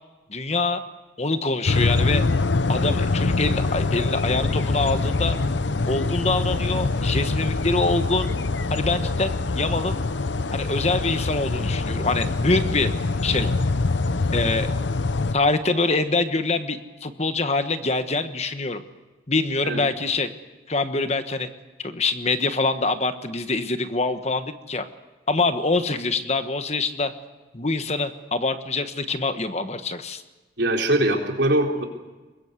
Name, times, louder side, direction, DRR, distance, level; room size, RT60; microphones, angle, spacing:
voice 1, 0.3-0.8 1.2-2.2 2.7-5.4 5.9-8.3 8.7-10.0 10.5-12.9 13.2-13.5 14.3-14.7 15.3-18.8 19.3-20.3 20.7-21.5 21.8-24.9 25.3-27.1 27.5-30.2, left 3 dB, 35° left, 9 dB, 1.3 m, -25 dB
sound 1, 1.7-15.4, left 3 dB, 80° left, 0.8 m, -24 dB
voice 2, 30.6-31.8, right 1 dB, 75° right, 1 dB, 4.2 m, -21 dB
24.0 x 21.5 x 8.2 m, 1.2 s
head